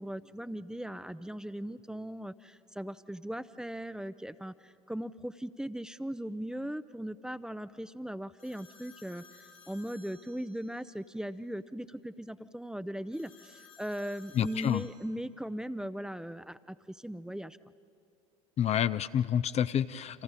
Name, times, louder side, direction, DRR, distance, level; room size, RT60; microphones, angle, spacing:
voice 1, 0.0-17.6, equal, 5° right, 14 dB, 0.6 m, -39 dB
sound 1, 8.4-10.9 13.1-14.9, left 6 dB, 80° left, 3.0 m, -57 dB
voice 2, 14.3-14.8 18.6-20.2, left 9 dB, 40° left, 13 dB, 0.5 m, -28 dB
29.5 x 26.5 x 4.2 m, 2.6 s
hypercardioid pair, 70°, 18 cm